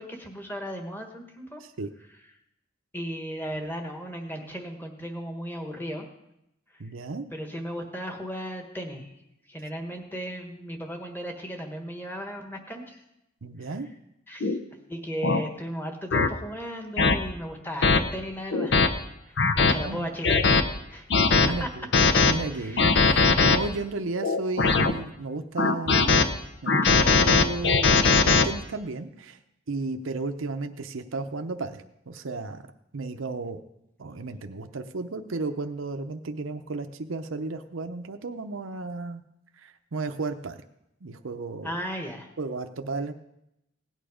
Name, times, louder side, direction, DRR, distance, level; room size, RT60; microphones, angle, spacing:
voice 1, 0.0-1.6 2.9-6.1 7.3-9.1 9.5-13.0 13.6-13.7 14.3-14.6 14.9-18.8 19.3-21.1 21.6-21.7 22.5-23.2 26.8-27.1 41.6-42.3, equal, 10° left, 4 dB, 1.5 m, -36 dB
voice 2, 1.6-1.9 6.8-7.3 13.4-13.9 19.6-20.1 21.2-21.9 22.3-29.4 29.7-32.6 32.9-33.6 34.0-39.2 39.6-40.6 41.0-41.8 42.4-43.1, right 3 dB, 85° right, 7 dB, 0.7 m, -34 dB
sound 1, 14.4-14.6 15.2-15.4 16.1-16.3 17.0-17.2 17.8-18.0 18.5-18.9 19.4-19.7 20.2-20.6 21.1-21.5 21.9-22.3 22.8-23.6 24.2-24.9 25.6-26.2 26.7-28.4, left 4 dB, 60° left, 0.8 m, -20 dB
17.0 x 9.2 x 5.0 m, 0.84 s
head